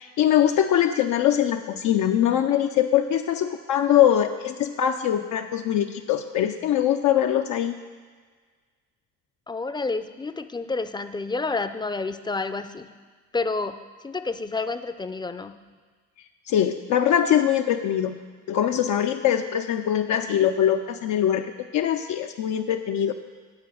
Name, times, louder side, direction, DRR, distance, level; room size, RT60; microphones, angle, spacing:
voice 1, 0.0-7.8 16.5-18.2 18.5-23.1, left 10 dB, 75° left, 4 dB, 0.5 m, -22 dB
voice 2, 9.5-12.9 13.3-13.8 14.0-15.5, left 3 dB, 15° left, 10 dB, 0.4 m, -29 dB
9.6 x 4.7 x 7.8 m, 1.5 s
cardioid pair, 90°, 30 cm